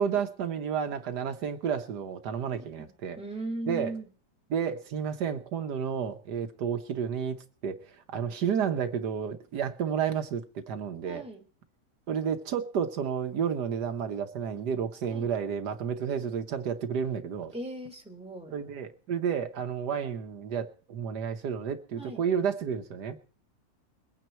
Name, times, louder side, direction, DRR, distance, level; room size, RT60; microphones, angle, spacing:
voice 1, 0.0-3.2 3.7-3.9 4.5-11.2 12.1-17.5 18.5-23.2, right 7 dB, 75° right, 1.6 m, -31 dB
voice 2, 2.5-2.9 3.2-4.1 11.0-11.4 15.1-15.3 17.5-18.5 22.0-22.2, right 1 dB, 5° right, 2.7 m, -38 dB
22.0 x 9.3 x 4.4 m
omnidirectional pair, 1.8 m